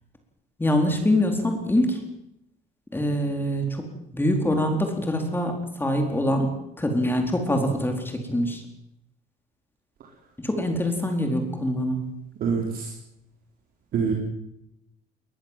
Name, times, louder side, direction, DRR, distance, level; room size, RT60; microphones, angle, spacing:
voice 1, 0.6-2.0 2.9-3.9 4.1-8.6 10.4-12.1, left 1 dB, 10° left, 4 dB, 4.3 m, -24 dB
voice 2, 12.4-12.9 13.9-14.1, right 5 dB, 60° right, 0 dB, 4.2 m, -25 dB
21.0 x 20.5 x 7.6 m, 0.82 s
cardioid pair, 110°, 17 cm